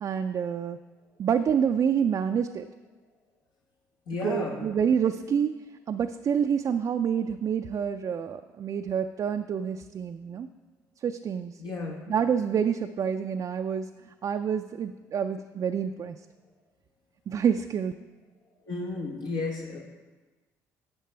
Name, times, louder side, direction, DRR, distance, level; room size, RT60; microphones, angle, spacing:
voice 1, 0.0-0.8 1.2-2.7 4.2-5.5 5.9-10.5 11.0-11.5 12.1-13.9 14.2-16.2 17.3-17.9, right 7 dB, 50° right, 7 dB, 0.4 m, -27 dB
voice 2, 4.1-4.7 11.6-12.0 18.6-19.8, left 3 dB, 70° left, -2 dB, 1.5 m, -33 dB
11.5 x 7.5 x 3.4 m, 1.3 s
hypercardioid pair, 60°, 8 cm